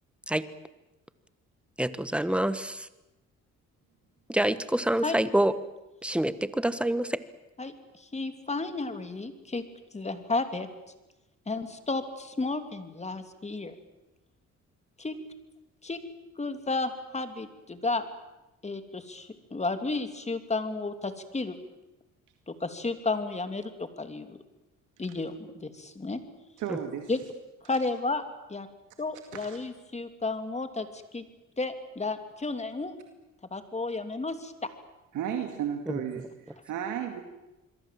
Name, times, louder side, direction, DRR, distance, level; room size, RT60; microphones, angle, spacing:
voice 1, 1.8-2.9 4.3-5.5 6.0-7.2 26.7-26.8 35.9-36.0, right 1 dB, 5° right, 14 dB, 1.3 m, -27 dB
voice 2, 8.1-9.6 9.9-10.7 11.5-13.7 15.0-15.1 15.8-16.0 16.4-18.1 18.6-21.6 22.5-24.4 25.0-26.2 27.1-27.2 27.7-28.2 28.5-28.7 29.0-30.9 31.1-31.2 31.6-32.9 33.5-34.7, left 3 dB, 20° left, 9 dB, 2.8 m, -32 dB
voice 3, 26.6-27.1 29.3-29.6 35.1-37.2, right 9 dB, 85° right, 5 dB, 2.3 m, -34 dB
27.5 x 22.5 x 7.6 m, 1.0 s
cardioid pair, 90°, 30 cm